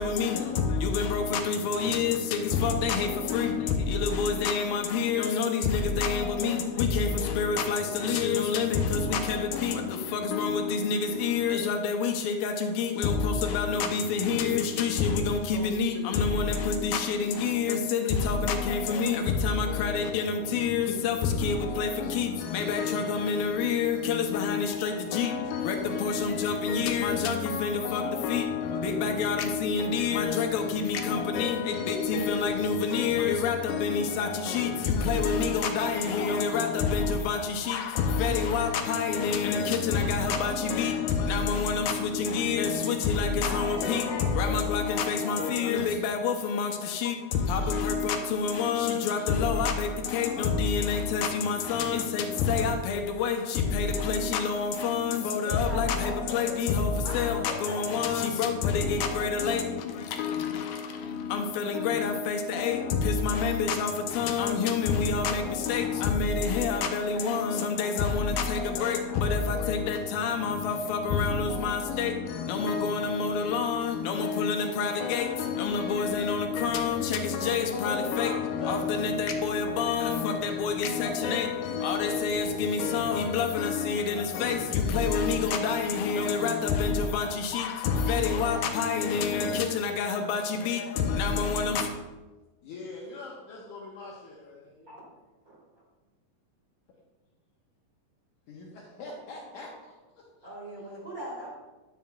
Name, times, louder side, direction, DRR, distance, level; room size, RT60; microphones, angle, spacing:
voice 1, 0.0-91.9, left 5 dB, 85° left, 4 dB, 2.4 m, -27 dB
voice 2, 15.5-16.3 22.7-23.3 32.1-32.4 35.1-36.8 77.4-78.8 92.6-94.9 98.5-100.5 100.8-100.9, left 3 dB, 70° left, -3 dB, 2.1 m, -42 dB
voice 3, 43.4-45.8 55.2-56.6 57.0-58.7 65.7-68.4 68.9-69.9 94.9-95.0 95.5-95.6 100.4-101.5, equal, 25° right, -7 dB, 2.9 m, -42 dB
10.0 x 7.4 x 2.3 m, 1.2 s
omnidirectional pair, 4.2 m